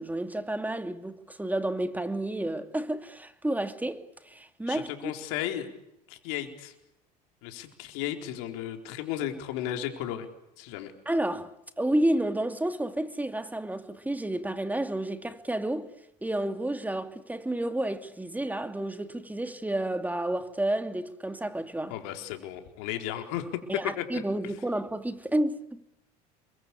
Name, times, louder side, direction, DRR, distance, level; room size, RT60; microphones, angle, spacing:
voice 1, 0.0-4.9 11.1-15.9 16.2-22.0 23.7-25.8, right 1 dB, 10° right, 2.6 m, -30 dB
voice 2, 4.7-5.7 6.1-6.7 7.4-10.3 10.6-10.9 21.9-23.5 24.0-24.2, left 11 dB, 75° left, 4.1 m, -34 dB
28.5 x 23.5 x 8.5 m
hypercardioid pair, 80°, 20 cm